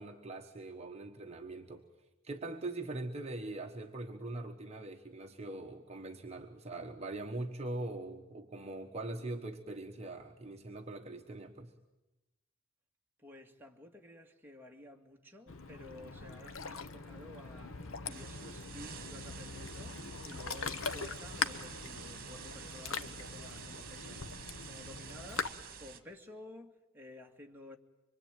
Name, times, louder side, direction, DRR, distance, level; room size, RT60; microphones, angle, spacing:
voice 1, 0.0-1.8 2.2-11.7, right 2 dB, 30° right, 1.3 m, -42 dB
voice 2, 13.2-27.8, left 1 dB, 10° right, 2.1 m, -53 dB
Ocean, 15.5-25.5, left 5 dB, 75° left, 1.2 m, -42 dB
Bowed string instrument, 15.5-20.7, equal, 10° left, 4.3 m, -61 dB
sound 1, 18.1-26.0, right 6 dB, 45° right, 2.1 m, -49 dB
25.5 x 23.0 x 9.1 m
head